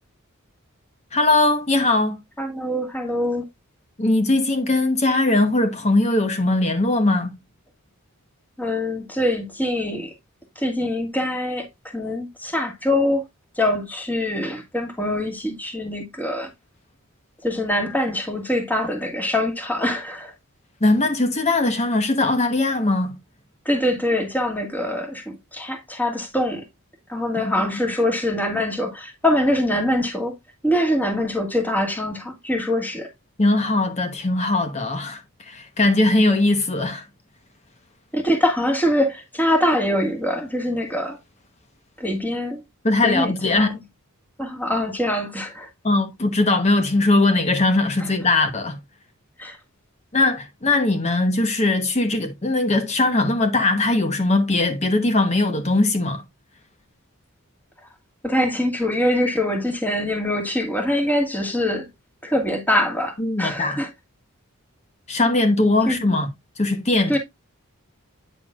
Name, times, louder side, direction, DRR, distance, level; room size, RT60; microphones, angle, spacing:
voice 1, 1.1-2.2 4.0-7.3 20.8-23.2 27.6-27.7 33.4-37.1 42.8-43.7 45.8-48.8 50.1-56.2 63.2-63.8 65.1-66.3 66.6-67.2, left 2 dB, 30° left, 1.0 m, -20 dB
voice 2, 2.4-3.4 8.6-10.1 10.6-11.7 11.9-13.2 13.6-16.5 17.4-20.3 23.7-26.6 27.1-30.3 30.6-33.1 38.1-41.2 42.0-42.6 43.0-43.7 44.4-45.7 48.0-48.1 49.4-49.6 58.2-61.9 62.2-63.9 65.9-66.0 67.1-67.2, left 1 dB, 10° left, 1.7 m, -23 dB
9.1 x 6.7 x 2.4 m
head